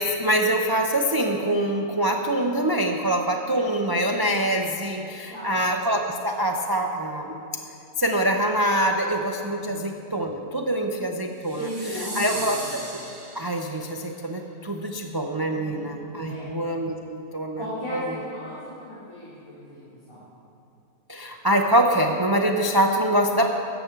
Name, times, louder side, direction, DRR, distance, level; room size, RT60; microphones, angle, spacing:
voice 1, 0.0-7.4 8.0-11.6 12.2-12.8 13.3-17.6 17.9-18.0 21.1-23.5, right 1 dB, 35° right, 2 dB, 0.3 m, -24 dB
voice 2, 5.3-5.6 9.4-9.8 11.4-12.8 15.1-15.2 15.5-15.9 16.3-16.5 17.6-20.2, equal, 20° left, -10 dB, 2.8 m, -36 dB
sound 1, 11.4-13.9, right 2 dB, 80° right, 2.6 m, -37 dB
14.0 x 6.0 x 8.6 m, 2.7 s
omnidirectional pair, 1.5 m